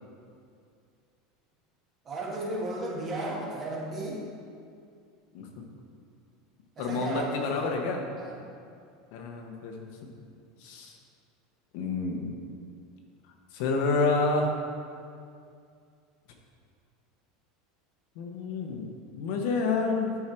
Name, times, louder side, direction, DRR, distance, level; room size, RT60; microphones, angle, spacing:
voice 1, 2.0-4.3 6.8-7.5 8.2-8.4, right 1 dB, 25° right, -3 dB, 1.5 m, -34 dB
voice 2, 6.8-8.1 9.1-10.0 10.6-11.0 11.7-12.4 13.5-14.5 18.2-18.9 19.2-20.2, left 3 dB, 65° left, 2 dB, 1.0 m, -29 dB
9.7 x 4.7 x 4.5 m, 2.3 s
supercardioid pair, 155°, 0 cm